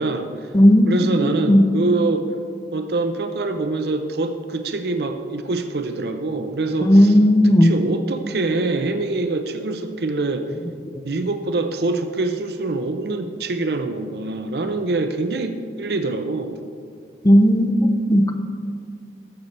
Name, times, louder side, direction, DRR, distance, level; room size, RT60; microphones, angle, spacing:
voice 1, 0.0-0.5 0.9-2.3 2.7-7.1 7.6-10.5 11.0-16.5, right 3 dB, 60° right, 7 dB, 0.6 m, -24 dB
voice 2, 0.5-0.9 1.2-1.7 6.8-7.7 17.2-17.7 18.1-18.3, equal, 20° left, 7 dB, 0.5 m, -14 dB
13.5 x 6.6 x 4.3 m, 2.2 s
head